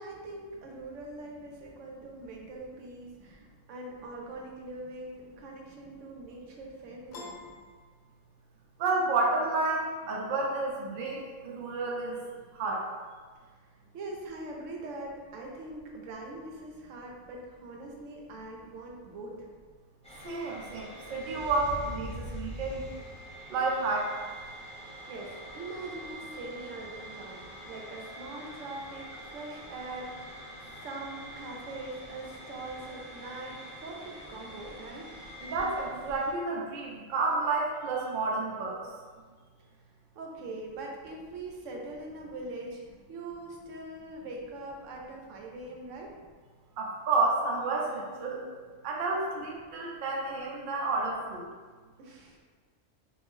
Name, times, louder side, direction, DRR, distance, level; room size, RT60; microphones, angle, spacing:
voice 1, 0.0-7.4 13.4-13.6 13.9-19.5 24.7-30.4 30.8-35.1 40.2-46.1 49.3-49.4 52.0-52.4, right 2 dB, 80° right, 0 dB, 0.9 m, -42 dB
Piano, 7.1-8.7, left 3 dB, 65° left, 0.7 m, -47 dB
voice 2, 8.8-12.2 12.6-12.8 20.2-22.8 23.5-24.3 35.4-38.7 46.8-48.4 48.8-51.5, right 3 dB, 55° right, -2 dB, 0.6 m, -30 dB
sound 1, 20.0-36.3, equal, 10° left, 0.5 m, -45 dB
2.6 x 2.5 x 3.5 m, 1.5 s
omnidirectional pair, 1.3 m